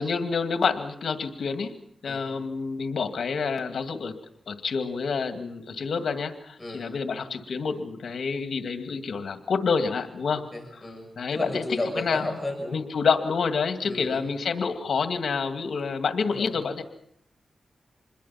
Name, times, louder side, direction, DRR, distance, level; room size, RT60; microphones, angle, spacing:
voice 1, 0.0-1.7 2.0-4.2 4.5-10.4 11.2-11.6 12.0-12.4 12.7-16.8, left 5 dB, 80° left, 7 dB, 2.1 m, -28 dB
voice 2, 10.5-12.8 13.8-14.2 16.2-16.5, left 2 dB, 20° left, 2 dB, 6.4 m, -32 dB
27.0 x 21.5 x 5.8 m, 0.70 s
cardioid pair, 70°, 0 cm